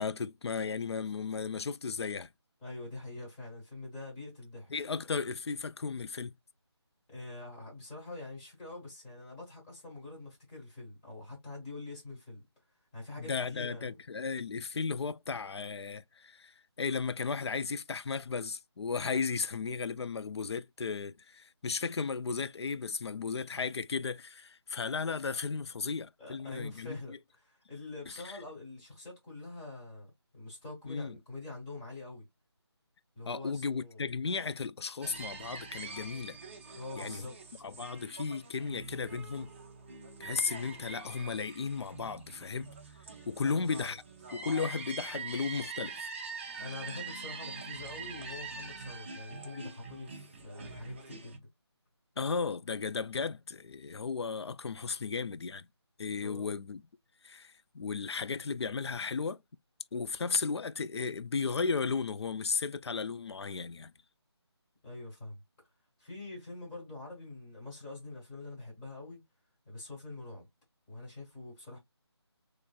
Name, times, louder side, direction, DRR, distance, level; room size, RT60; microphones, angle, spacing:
voice 1, 0.0-2.3 4.7-6.3 13.2-27.0 30.9-31.2 33.3-36.4 37.0-37.2 37.6-39.5 40.2-42.7 43.3-44.0 44.3-46.1 52.2-55.7 56.0-56.8 57.2-59.4 59.9-63.9, left 5 dB, 70° left, 0.4 m, -35 dB
voice 2, 2.6-4.7 7.1-12.4 12.9-14.0 26.2-32.3 33.1-34.0 36.7-37.4 43.4-43.9 46.6-51.5 56.2-56.5 64.8-65.4 66.0-69.2 69.6-70.5 70.9-71.8, left 2 dB, 15° left, 1.5 m, -45 dB
sound 1, 35.0-51.4, right 4 dB, 25° right, 0.6 m, -44 dB
3.6 x 3.2 x 2.2 m
figure-of-eight pair, 160°, 14 cm